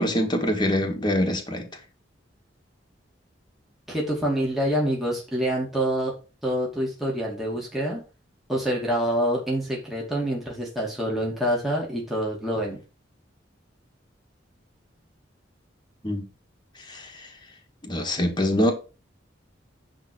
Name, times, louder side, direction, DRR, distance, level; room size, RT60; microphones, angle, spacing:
voice 1, 0.0-1.7 16.0-16.2 16.9-17.0 17.8-18.7, equal, 25° left, 1.9 m, -24 dB
voice 2, 3.9-6.1 6.4-8.0 8.5-12.8, equal, ahead, 2.6 m, -26 dB
10.5 x 3.8 x 6.3 m
head